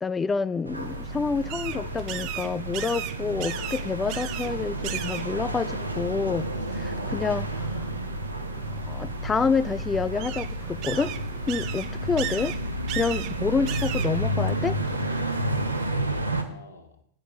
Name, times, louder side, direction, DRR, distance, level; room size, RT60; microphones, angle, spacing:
voice 1, 0.0-7.8 8.9-11.1 11.5-12.5 12.9-14.8, left 5 dB, 15° left, 15 dB, 0.4 m, -28 dB
sound 1, 0.7-15.9, right 12 dB, 40° right, 0.5 m, -38 dB
sound 2, 0.7-16.4, equal, 85° right, 0.8 m, -31 dB
voice 2, 15.4-17.0, left 3 dB, 75° left, 3 dB, 1.3 m, -50 dB
9.0 x 5.0 x 6.1 m, 0.67 s
figure-of-eight pair, 90°, 0 cm